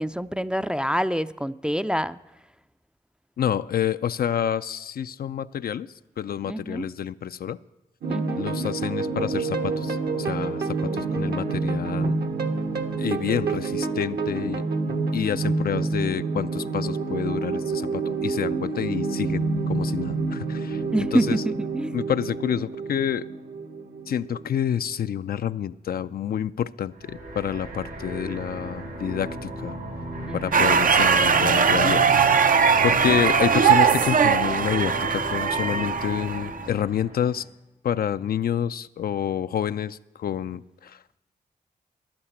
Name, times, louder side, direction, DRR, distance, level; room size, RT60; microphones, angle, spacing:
voice 1, 0.0-2.2 6.5-6.9 8.1-8.5 10.8-11.5 20.9-22.0 30.3-30.6 33.0-33.1, equal, 5° right, 12 dB, 0.4 m, -27 dB
voice 2, 3.4-7.6 8.4-12.2 13.0-14.6 15.1-20.8 21.1-21.4 21.9-23.3 24.1-29.8 30.3-32.5 32.8-37.5 37.8-41.2, left 9 dB, 60° left, 13 dB, 0.4 m, -28 dB
sound 1, 8.0-24.9, right 4 dB, 70° right, 1.2 m, -28 dB
sound 2, 27.0-37.5, equal, 90° right, 4.8 m, -35 dB
sound 3, 30.5-36.7, right 6 dB, 55° right, 0.5 m, -20 dB
11.0 x 8.8 x 8.1 m, 0.97 s
supercardioid pair, 45°, 17 cm